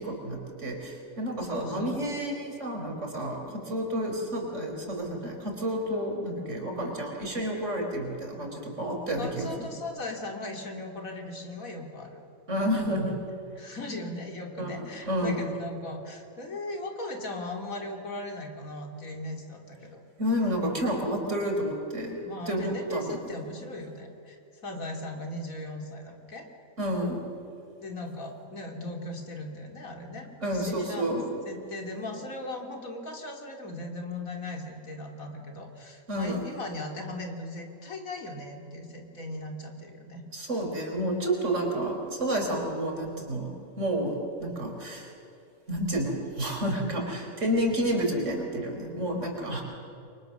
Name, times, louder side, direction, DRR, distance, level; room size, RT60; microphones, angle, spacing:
voice 1, 0.0-9.7 12.5-13.2 14.6-15.4 20.2-22.2 22.5-23.2 26.8-27.2 30.4-31.2 36.1-36.4 40.3-45.1 45.7-49.6, equal, 55° right, 1 dB, 4.6 m, -30 dB
voice 2, 1.5-2.1 9.2-12.2 13.5-20.0 22.2-26.5 27.8-31.2 31.4-40.2, left 2 dB, 70° left, 3 dB, 3.3 m, -38 dB
29.5 x 23.5 x 6.8 m, 2.7 s
omnidirectional pair, 1.5 m